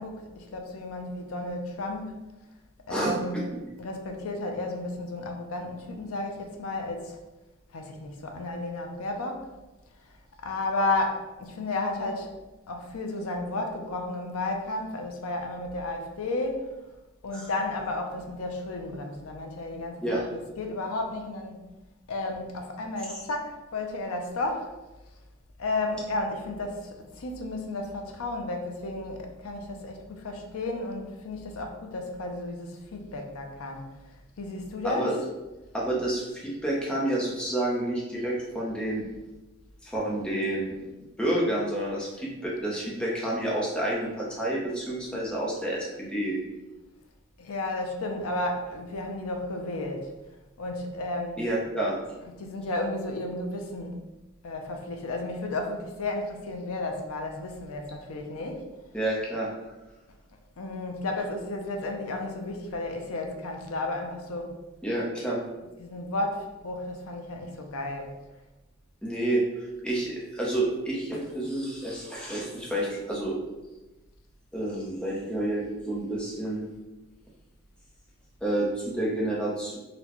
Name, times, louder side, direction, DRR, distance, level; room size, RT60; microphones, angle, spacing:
voice 1, 0.0-2.3 2.9-3.4 3.8-7.2 7.7-9.5 10.4-12.3 12.7-16.8 17.2-20.2 20.6-21.6 22.1-24.7 25.6-33.9 34.4-35.1 47.4-50.1 50.6-51.4 52.3-54.0 54.4-58.7 60.6-64.6 65.8-68.1, left 2 dB, 90° left, 3 dB, 0.5 m, -33 dB
voice 2, 35.7-39.0 39.8-40.8 41.2-46.4 51.4-52.0 58.9-59.5 64.8-65.4 69.0-69.4 69.8-73.3 74.5-76.7 78.4-79.8, right 1 dB, 5° left, -5 dB, 0.6 m, -29 dB
3.9 x 2.2 x 2.9 m, 1.1 s
head